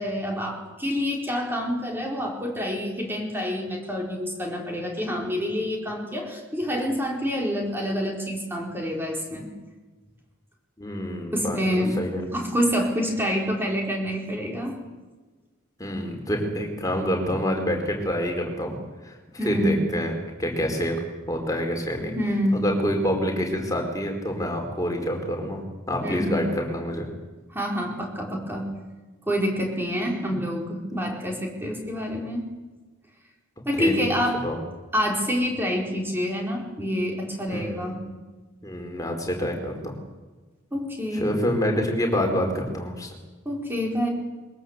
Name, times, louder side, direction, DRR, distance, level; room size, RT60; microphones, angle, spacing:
voice 1, 0.0-9.5 11.3-11.9 12.3-14.8 19.4-19.7 22.1-22.7 26.0-26.6 27.5-28.7 29.3-32.5 33.6-34.4 34.9-38.0 40.7-41.4 43.4-44.1, equal, 10° right, 0 dB, 4.4 m, -27 dB
voice 2, 10.8-12.3 15.8-19.2 19.4-20.1 20.4-21.0 21.3-22.1 22.5-25.6 25.9-27.1 30.3-30.4 33.8-34.0 34.4-34.6 37.5-37.9 38.6-39.9 41.1-43.1, equal, 15° left, 2 dB, 4.5 m, -27 dB
22.5 x 21.0 x 8.1 m, 1.2 s
head